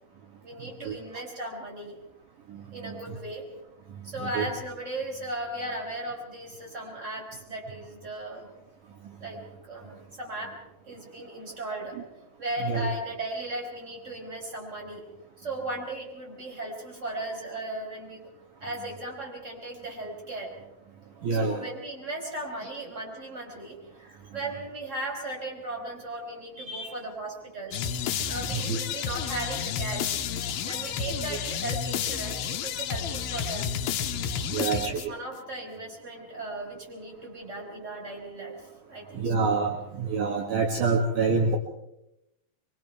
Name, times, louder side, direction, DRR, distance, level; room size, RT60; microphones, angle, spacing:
voice 1, 0.4-2.0 2.7-3.5 4.0-8.5 9.2-10.6 10.9-12.0 12.4-15.0 15.4-18.3 18.6-20.5 21.3-27.8 28.3-30.2 30.6-33.7 34.5-39.3, right 1 dB, 20° right, -1 dB, 5.4 m, -37 dB
voice 2, 21.2-21.6 26.7-26.9 28.1-28.8 34.5-35.0 39.1-41.6, right 4 dB, 60° right, 1 dB, 3.0 m, -27 dB
sound 1, 27.7-35.4, left 8 dB, 85° left, 2.9 m, -31 dB
25.5 x 24.0 x 4.7 m, 0.85 s
omnidirectional pair, 4.3 m